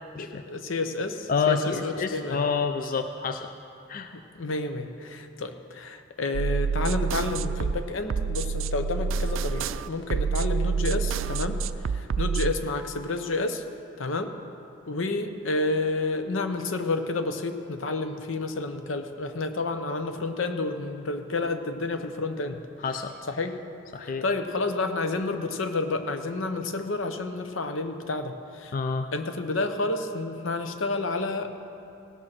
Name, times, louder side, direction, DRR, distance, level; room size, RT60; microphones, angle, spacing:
voice 1, 0.2-2.4 4.1-11.6 11.9-13.6 14.0-14.3 14.9-22.7 23.3-23.6 24.0-28.8 29.1-31.5, left 3 dB, 85° left, 7 dB, 0.8 m, -30 dB
voice 2, 1.3-3.5 3.9-4.1 22.8-23.1 23.9-24.2 28.7-29.1, left 5 dB, 45° left, 7 dB, 0.4 m, -28 dB
sound 1, 6.3-12.5, right 5 dB, 75° right, 0.4 m, -27 dB
17.5 x 6.6 x 5.9 m, 2.6 s
head